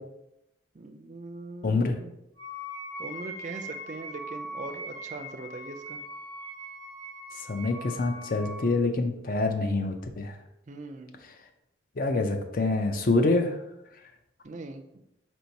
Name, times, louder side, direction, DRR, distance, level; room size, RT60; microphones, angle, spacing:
voice 1, 0.7-2.1 3.0-6.0 10.7-11.2 14.4-15.0, right 3 dB, 40° right, 6 dB, 0.4 m, -41 dB
voice 2, 1.6-2.0 7.5-10.4 12.0-13.6, left 3 dB, 45° left, 6 dB, 0.5 m, -26 dB
Wind instrument woodwind instrument, 2.4-8.7, equal, 20° left, 1.0 m, -40 dB
4.4 x 4.4 x 2.7 m, 0.87 s
head